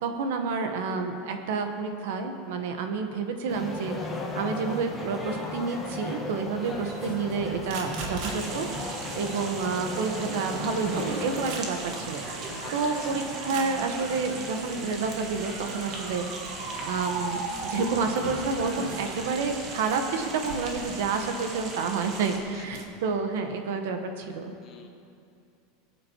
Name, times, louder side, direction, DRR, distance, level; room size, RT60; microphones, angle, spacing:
voice 1, 0.0-3.9 4.4-8.9 9.1-16.3 16.9-24.5, right 4 dB, 75° right, 6 dB, 1.0 m, -29 dB
sound 1, 3.5-11.6, left 2 dB, 5° left, 1.2 m, -36 dB
sound 2, 6.6-22.8, right 2 dB, 55° right, 1.4 m, -39 dB
sound 3, 8.2-22.4, right 3 dB, 35° right, 1.3 m, -39 dB
voice 2, 12.5-12.7 13.0-13.1 22.5-22.6 24.6-24.9, left 7 dB, 35° left, 3 dB, 1.1 m, -48 dB
20.0 x 8.4 x 2.9 m, 2.5 s
supercardioid pair, 165°, 0 cm